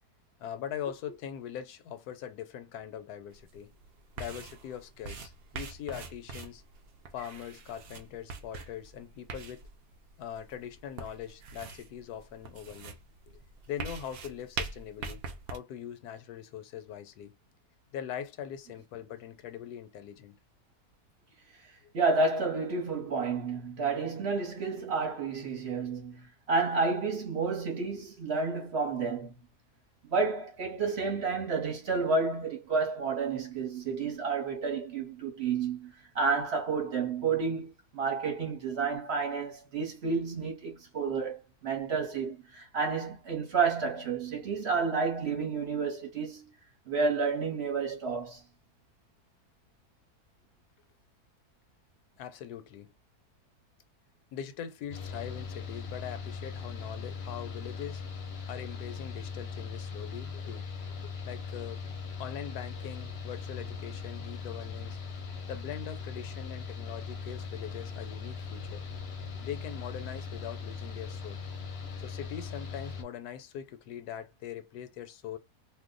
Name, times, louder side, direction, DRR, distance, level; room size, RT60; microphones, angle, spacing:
voice 1, 0.4-3.7 4.2-6.6 7.1-9.6 10.2-13.0 13.3-13.4 13.7-15.2 15.5-17.3 17.9-20.4 21.8-21.9 52.2-52.9 54.3-58.0 58.5-60.7 61.0-61.8 62.2-65.0 65.5-68.8 69.4-71.4 72.0-75.4, left 9 dB, 80° left, 1.1 m, -42 dB
sound 1, 3.3-15.6, right 4 dB, 80° right, 0.5 m, -43 dB
voice 2, 21.9-29.3 30.0-46.5 46.9-48.4, right 4 dB, 50° right, 1.0 m, -30 dB
Mechanical fan, 54.9-73.0, left 5 dB, 55° left, 0.8 m, -40 dB
2.6 x 2.1 x 3.7 m
omnidirectional pair, 1.7 m